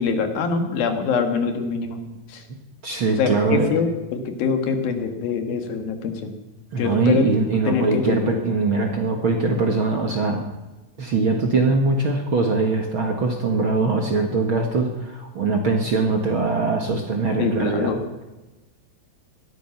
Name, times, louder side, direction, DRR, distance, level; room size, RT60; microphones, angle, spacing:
voice 1, 0.0-2.0 2.3-2.4 3.2-6.3 6.8-7.3 7.7-8.4 17.4-18.0, left 5 dB, 80° left, 6 dB, 3.5 m, -24 dB
voice 2, 2.8-3.7 6.7-10.4 11.0-17.9, right 3 dB, 50° right, 2 dB, 1.7 m, -22 dB
19.0 x 13.0 x 5.9 m, 1.1 s
omnidirectional pair, 4.1 m